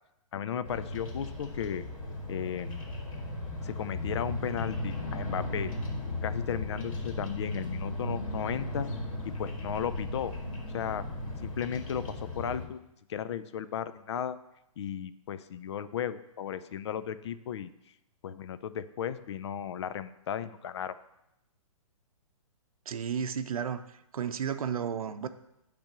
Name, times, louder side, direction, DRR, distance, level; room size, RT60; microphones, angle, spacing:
voice 1, 0.3-1.8 2.3-2.9 3.6-5.7 6.2-8.9 9.2-10.3 10.7-11.1 11.4-12.8 13.1-14.4 14.8-17.7 18.2-21.0, left 9 dB, 55° left, 13 dB, 0.4 m, -35 dB
Bird vocalization bird call bird song, 0.6-12.7, left 1 dB, 75° left, 2.0 m, -36 dB
voice 2, 22.9-23.8 24.1-25.3, right 7 dB, 85° right, 11 dB, 0.6 m, -32 dB
8.8 x 3.4 x 6.6 m, 0.85 s
hypercardioid pair, 160°, 18 cm